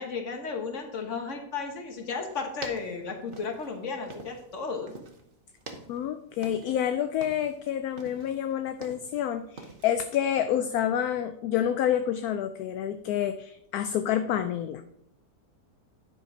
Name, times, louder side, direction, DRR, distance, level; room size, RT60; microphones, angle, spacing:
voice 1, 0.0-4.9, left 4 dB, 50° left, 4 dB, 1.6 m, -34 dB
sound 1, 2.3-4.6 4.9-5.3 5.6-6.9 7.1-7.6 8.0-9.2 9.6-9.9, right 3 dB, 40° right, 1.1 m, -45 dB
voice 2, 5.9-14.8, left 10 dB, 75° left, 9 dB, 1.0 m, -28 dB
10.0 x 5.2 x 5.0 m, 0.74 s
omnidirectional pair, 1.7 m